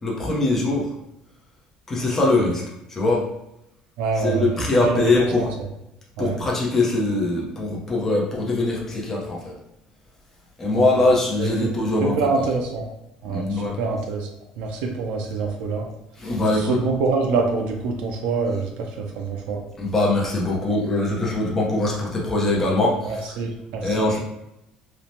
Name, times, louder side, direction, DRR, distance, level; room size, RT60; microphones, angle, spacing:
voice 1, 0.0-0.9 1.9-2.6 2.9-3.3 4.2-5.5 6.2-9.5 10.6-12.2 13.3-13.8 16.2-16.8 19.8-23.2 23.8-24.2, left 2 dB, 15° left, -4 dB, 0.6 m, -22 dB
voice 2, 4.0-4.6 4.9-5.1 5.4-5.5 6.2-6.4 10.7-11.1 11.4-11.7 12.0-12.9 13.2-14.3 14.6-15.9 16.5-19.6 23.0-24.1, right 4 dB, 80° right, 2 dB, 0.4 m, -25 dB
3.0 x 2.0 x 2.6 m, 0.87 s
cardioid pair, 175°, 2 cm